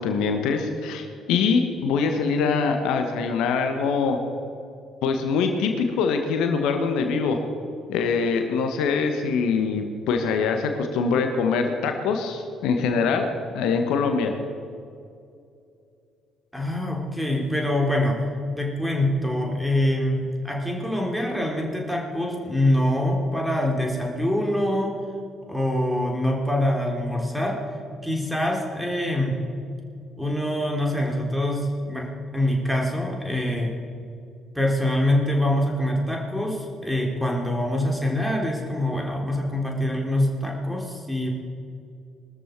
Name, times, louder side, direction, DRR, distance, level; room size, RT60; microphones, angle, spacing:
voice 1, 0.0-4.2 5.0-7.4 7.9-13.3 13.5-14.3, left 5 dB, 65° left, 5 dB, 1.4 m, -23 dB
voice 2, 16.5-18.2 18.6-25.0 25.5-27.6 28.0-29.4 30.2-33.7 34.5-41.3, left 1 dB, ahead, 0 dB, 3.7 m, -24 dB
21.0 x 13.5 x 4.7 m, 2.4 s
figure-of-eight pair, 45°, 0 cm